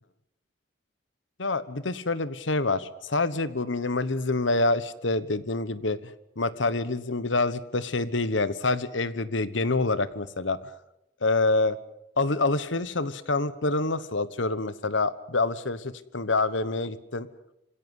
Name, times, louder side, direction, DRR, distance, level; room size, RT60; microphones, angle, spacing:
voice 1, 1.4-6.1 6.4-10.6 11.2-11.8 12.2-17.3, left 3 dB, 85° left, 15 dB, 1.3 m, -26 dB
26.5 x 17.0 x 8.3 m, 0.89 s
head